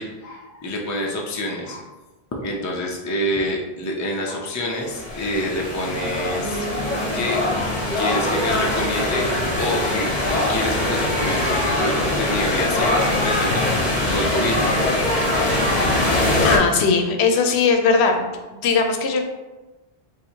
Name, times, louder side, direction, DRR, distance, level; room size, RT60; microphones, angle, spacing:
voice 1, 0.0-1.8 2.4-6.7 7.1-14.8, left 1 dB, 30° left, -1 dB, 0.3 m, -27 dB
sound 1, 4.7-16.6, left 1 dB, 45° left, 0.9 m, -22 dB
Bass guitar, 6.4-10.1, right 3 dB, 80° right, 1.1 m, -36 dB
voice 2, 16.4-18.3 18.5-19.2, left 5 dB, 80° left, 4 dB, 0.8 m, -19 dB
2.8 x 2.6 x 4.2 m, 1.1 s
omnidirectional pair, 1.1 m